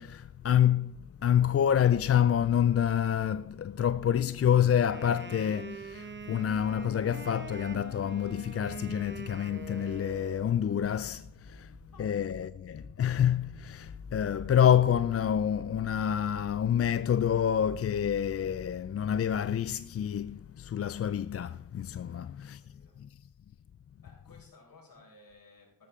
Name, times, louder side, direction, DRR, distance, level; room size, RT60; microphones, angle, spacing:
voice 1, 0.0-11.7 12.0-22.6 23.0-23.1, left 9 dB, 40° left, 0.4 m, -27 dB
Wind instrument woodwind instrument, 4.7-10.6, right 4 dB, 30° right, 1.4 m, -45 dB
sound 1, 5.8-20.1, right 1 dB, 5° left, 1.6 m, -54 dB
voice 2, 22.1-23.0 24.0-25.9, left 3 dB, 65° left, 4.9 m, -58 dB
13.0 x 12.5 x 3.7 m
cardioid pair, 50°, 36 cm